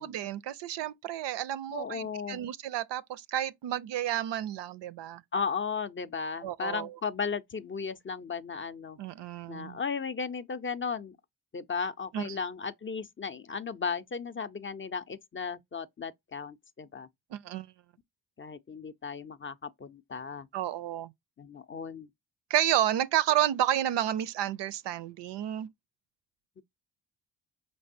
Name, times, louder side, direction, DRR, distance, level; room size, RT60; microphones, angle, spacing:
voice 1, 0.0-5.2 6.4-6.9 9.0-9.8 12.1-12.4 17.3-17.7 20.5-21.1 22.5-25.7, right 12 dB, 65° right, 0.5 m, -31 dB
voice 2, 1.7-2.5 5.3-9.0 9.5-11.2 11.5-17.1 18.4-20.5 21.4-22.1, left 5 dB, 25° left, 0.5 m, -35 dB
5.2 x 3.3 x 2.5 m
supercardioid pair, 55°, 46 cm